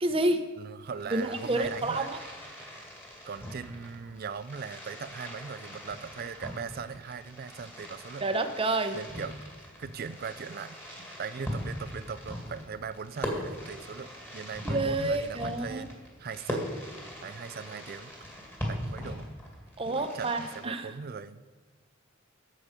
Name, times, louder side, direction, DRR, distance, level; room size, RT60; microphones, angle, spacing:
voice 1, 0.0-0.4 1.1-2.2 8.2-9.0 14.6-15.9 19.8-20.9, right 2 dB, 25° right, 8 dB, 0.8 m, -29 dB
voice 2, 0.6-2.1 3.3-8.5 8.9-9.3 9.8-15.9 16.2-16.7 17.2-18.1 18.7-19.3 19.9-21.4, right 6 dB, 45° right, 14 dB, 0.4 m, -40 dB
Fireworks, 0.8-20.6, equal, 10° left, 2.1 m, -40 dB
12.5 x 7.6 x 5.1 m, 1.3 s
head